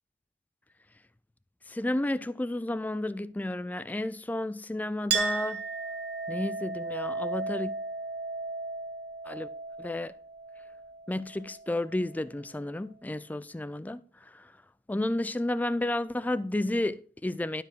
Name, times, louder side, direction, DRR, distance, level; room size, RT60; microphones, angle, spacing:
voice 1, 1.7-5.6 6.3-7.7 9.3-9.5 9.8-10.2 11.1-14.5 14.9-17.6, left 1 dB, 10° left, 0.3 m, -32 dB
Chink clink, 5.1-12.2, right 4 dB, 60° right, 1.0 m, -35 dB
11.5 x 4.8 x 4.4 m
head